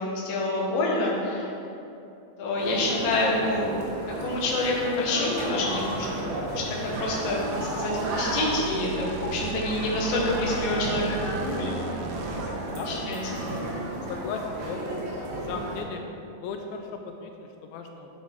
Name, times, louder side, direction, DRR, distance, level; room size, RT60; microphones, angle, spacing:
voice 1, 0.0-1.5 2.4-3.7 4.2-6.2 6.5-11.7 12.6-13.2, left 2 dB, 55° left, -4 dB, 2.1 m, -27 dB
sound 1, 2.6-15.8, right 1 dB, 60° right, 2.2 m, -33 dB
sound 2, 6.9-12.7, right 6 dB, 85° right, 2.5 m, -37 dB
voice 2, 14.1-14.9 15.2-16.0 16.4-18.1, left 5 dB, 85° left, 4 dB, 2.4 m, -36 dB
10.5 x 5.6 x 4.5 m, 2.8 s
omnidirectional pair, 4.2 m